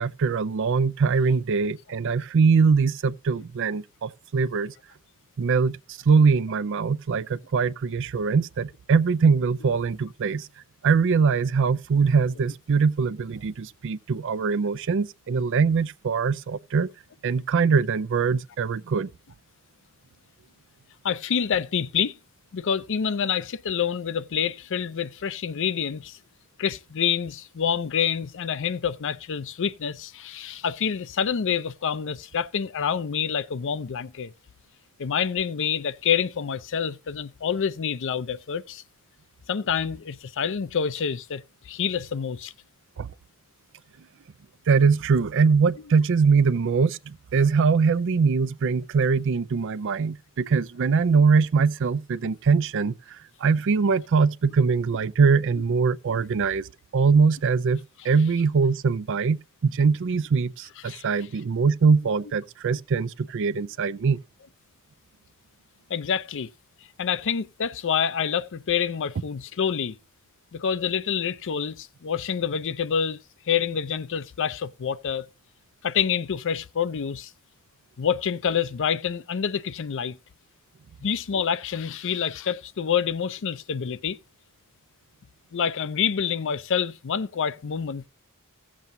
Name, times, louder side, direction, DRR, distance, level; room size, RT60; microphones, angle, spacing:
voice 1, 0.0-4.7 5.4-10.5 10.8-16.9 17.2-19.1 43.0-43.1 44.7-64.2, right 5 dB, 55° right, 0.4 m, -22 dB
voice 2, 21.0-22.2 22.5-26.2 26.6-34.3 35.0-38.8 39.5-42.5 60.8-61.1 65.9-66.5 67.0-70.0 70.5-75.3 75.8-77.3 78.0-80.2 81.0-84.2 85.5-88.1, left 7 dB, 60° left, 0.5 m, -27 dB
16.0 x 7.4 x 2.6 m
head